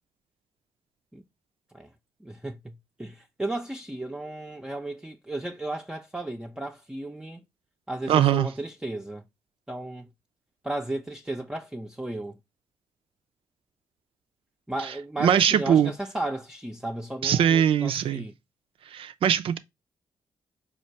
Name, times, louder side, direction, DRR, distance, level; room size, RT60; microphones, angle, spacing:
voice 1, 2.2-7.4 7.9-9.2 9.7-10.1 10.6-12.4 14.7-18.3, right 1 dB, 5° right, 0.5 m, -34 dB
voice 2, 8.1-8.5 14.8-14.9 15.2-15.9 17.2-18.2 18.9-19.6, right 9 dB, 70° right, 0.4 m, -21 dB
4.3 x 2.4 x 4.4 m
supercardioid pair, 50°, 9 cm